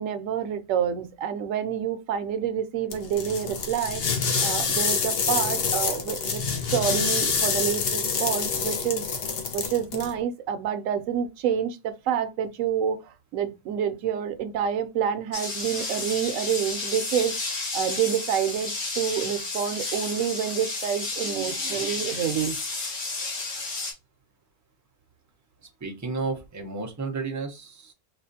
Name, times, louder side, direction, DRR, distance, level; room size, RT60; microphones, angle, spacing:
voice 1, 0.0-4.0 4.4-6.4 6.7-9.0 9.5-17.3 17.7-22.6, right 8 dB, 90° right, 1.0 m, -28 dB
sound 1, 2.9-10.1, left 5 dB, 55° left, 0.9 m, -27 dB
sound 2, 15.3-23.9, left 3 dB, 75° left, 1.6 m, -32 dB
voice 2, 25.8-27.9, right 4 dB, 20° right, 0.6 m, -32 dB
4.1 x 2.4 x 2.6 m
omnidirectional pair, 1.3 m